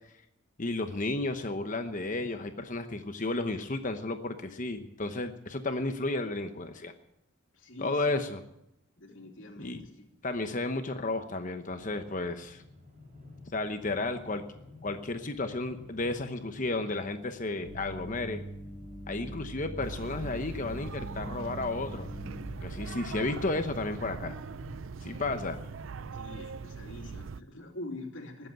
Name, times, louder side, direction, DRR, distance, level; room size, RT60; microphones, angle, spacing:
voice 1, 0.6-6.9 7.8-8.4 9.6-9.8 10.2-12.6 13.5-14.4 14.8-18.4 19.1-22.1 22.6-24.4 25.0-25.6, left 2 dB, 40° left, 7 dB, 1.0 m, -33 dB
voice 2, 7.5-8.1 9.0-10.1 26.1-28.5, left 1 dB, 70° left, 2 dB, 3.0 m, -44 dB
sound 1, 11.7-26.1, left 2 dB, 35° right, 3.5 m, -51 dB
sound 2, 17.6-23.1, equal, 20° right, 1.7 m, -43 dB
sound 3, 19.8-27.4, right 5 dB, 75° right, 0.5 m, -41 dB
20.0 x 8.0 x 8.8 m, 0.81 s
head